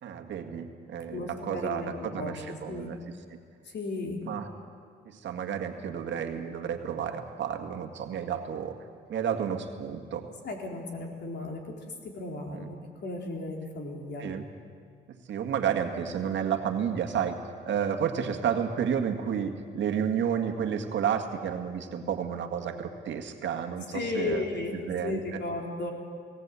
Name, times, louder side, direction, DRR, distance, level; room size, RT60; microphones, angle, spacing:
voice 1, 0.0-3.1 4.3-4.5 5.1-8.8 9.1-10.3 12.5-12.7 14.2-14.5 15.3-17.4 17.7-24.4 24.7-25.4, right 8 dB, 65° right, 4 dB, 1.9 m, -31 dB
voice 2, 1.1-2.3 2.7-2.9 3.7-4.2 10.4-11.6 12.1-12.8 13.0-14.3 23.9-24.7 25.0-25.9, left 3 dB, 60° left, 1 dB, 3.7 m, -34 dB
19.0 x 18.0 x 8.3 m, 2.1 s
cardioid pair, 90°, 20 cm